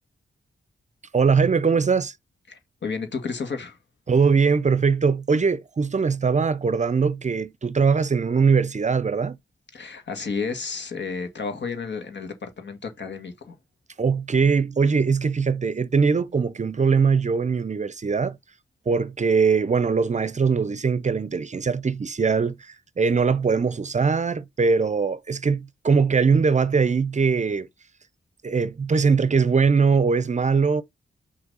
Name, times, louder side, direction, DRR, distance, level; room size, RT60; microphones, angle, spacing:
voice 1, 1.1-2.1 4.1-9.4 14.0-18.4 18.9-27.7 28.4-30.8, right 5 dB, 35° right, 0.6 m, -21 dB
voice 2, 2.5-3.8 9.7-13.6, left 5 dB, 65° left, 1.9 m, -32 dB
5.9 x 3.2 x 5.4 m
cardioid pair, 75°, 20 cm